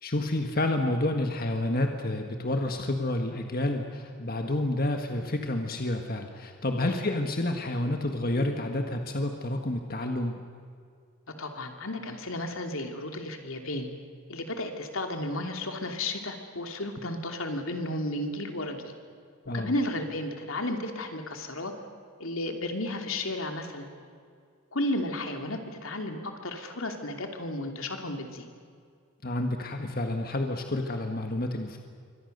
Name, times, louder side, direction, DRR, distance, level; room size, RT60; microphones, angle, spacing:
voice 1, 0.0-10.3 19.4-19.7 29.2-31.8, left 1 dB, 45° left, 4 dB, 1.6 m, -29 dB
voice 2, 11.4-13.9 14.3-18.9 19.5-21.7 22.2-23.9 24.7-28.5, left 1 dB, 80° left, 4 dB, 2.8 m, -33 dB
27.5 x 24.5 x 6.8 m, 2.2 s
head